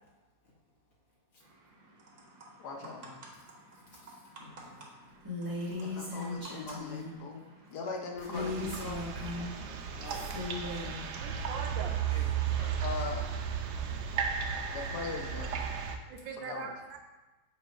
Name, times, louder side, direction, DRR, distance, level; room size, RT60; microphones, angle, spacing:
sound 1, 1.4-7.9, right 2 dB, 50° right, 1.2 m, -53 dB
voice 1, 2.6-3.2 5.8-7.4 7.7-9.1 12.8-13.3 14.7-15.6 16.4-16.7, left 4 dB, 65° left, 1 dB, 1.2 m, -40 dB
voice 2, 3.9-4.9 9.3-10.3 12.1-12.9, left 2 dB, 50° left, -3 dB, 1.6 m, -51 dB
Female speech woman speaking, 5.2-7.2 8.2-9.6 10.0-11.0, left 2 dB, 15° right, 1.1 m, -38 dB
sound 2, 8.3-16.0, right 7 dB, 75° right, 1.1 m, -34 dB
voice 3, 11.2-11.9 13.9-14.0 16.1-17.0, right 5 dB, 90° right, 4 dB, 1.4 m, -42 dB
7.3 x 3.1 x 4.5 m, 1.1 s
omnidirectional pair, 2.0 m